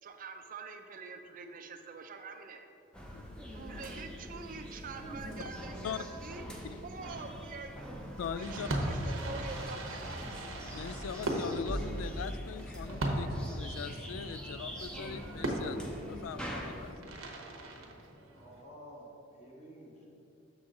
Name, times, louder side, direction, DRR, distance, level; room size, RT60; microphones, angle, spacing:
voice 1, 0.0-2.7 3.5-6.4 6.8-7.9 8.4-10.2, right 4 dB, 40° right, 6 dB, 0.5 m, -45 dB
sound 1, 2.9-16.9, equal, 5° left, 0.6 m, -43 dB
voice 2, 8.2-8.7 10.7-17.1, left 6 dB, 75° left, 13 dB, 0.3 m, -41 dB
Fireworks, 8.4-18.6, right 1 dB, 80° right, 0.9 m, -38 dB
voice 3, 18.3-20.1, equal, 30° left, -3 dB, 1.1 m, -51 dB
7.0 x 6.1 x 3.7 m, 2.7 s
head